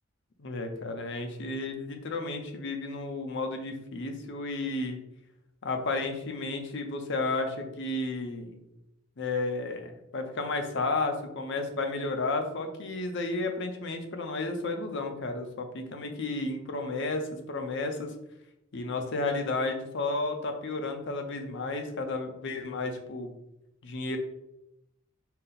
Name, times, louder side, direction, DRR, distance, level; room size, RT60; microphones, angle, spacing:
voice 1, 0.4-5.0 5.6-8.6 9.2-18.1 18.7-23.3 23.8-24.2, left 3 dB, 65° left, 5 dB, 0.6 m, -32 dB
4.0 x 2.0 x 3.9 m, 0.85 s
head